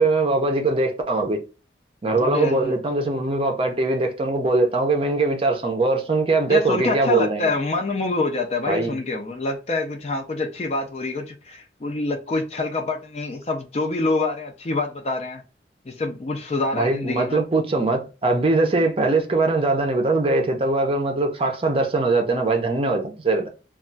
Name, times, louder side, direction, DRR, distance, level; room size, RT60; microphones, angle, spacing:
voice 1, 0.0-1.4 2.0-7.5 8.7-8.9 16.7-23.5, right 3 dB, 30° right, 0.5 m, -21 dB
voice 2, 2.2-2.8 6.5-15.4 15.9-17.4, left 3 dB, 35° left, 0.4 m, -26 dB
2.3 x 2.2 x 3.8 m
head